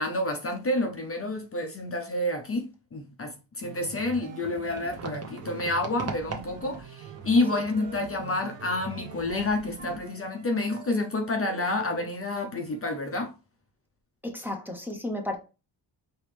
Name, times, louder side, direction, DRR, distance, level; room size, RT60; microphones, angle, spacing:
voice 1, 0.0-13.3, left 2 dB, 30° left, 0.6 m, -29 dB
sound 1, 3.6-10.0, right 7 dB, 85° right, 0.7 m, -44 dB
sound 2, 4.1-10.8, right 4 dB, 35° right, 0.9 m, -43 dB
Wind instrument woodwind instrument, 6.4-9.5 9.8-13.1, right 9 dB, 60° right, 1.6 m, -48 dB
voice 2, 14.2-15.4, left 1 dB, 5° right, 0.7 m, -33 dB
4.8 x 3.1 x 3.3 m
wide cardioid pair, 140°, 44 cm